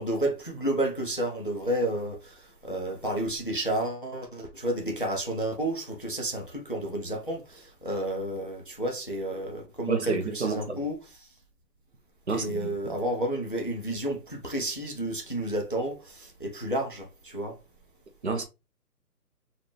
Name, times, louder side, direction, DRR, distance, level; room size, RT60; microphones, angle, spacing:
voice 1, 0.0-11.3 12.3-17.6, right 1 dB, 35° left, 0.4 m, -31 dB
voice 2, 9.9-10.8 12.3-12.9 18.2-18.4, right 4 dB, 45° right, 0.6 m, -30 dB
3.9 x 2.3 x 3.1 m
hypercardioid pair, 165°, 49 cm